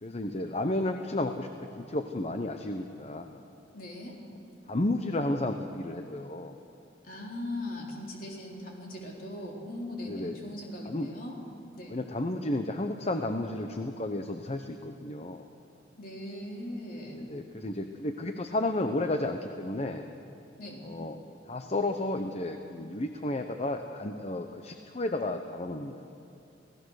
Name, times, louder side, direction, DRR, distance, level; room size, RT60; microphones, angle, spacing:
voice 1, 0.0-1.5 1.8-3.4 4.7-6.5 10.1-10.4 10.9-11.1 11.9-15.5 17.1-20.0 20.8-21.2 21.5-26.0, left 2 dB, 35° left, 6 dB, 0.9 m, -32 dB
voice 2, 3.7-4.2 7.0-11.4 11.8-12.0 16.0-17.2 20.6-20.9, left 1 dB, 50° left, -1 dB, 3.9 m, -39 dB
28.5 x 17.5 x 6.5 m, 2.8 s
head